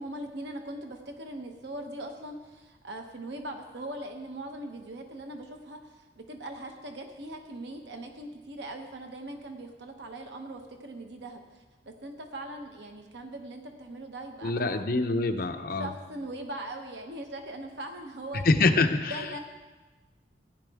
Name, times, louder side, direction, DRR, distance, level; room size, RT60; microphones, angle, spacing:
voice 1, 0.0-14.8 15.8-18.4 19.1-19.4, right 1 dB, 70° right, 4 dB, 1.0 m, -40 dB
voice 2, 14.4-15.9 18.3-19.2, left 3 dB, 55° left, 7 dB, 0.7 m, -25 dB
15.5 x 10.5 x 3.5 m, 1.2 s
head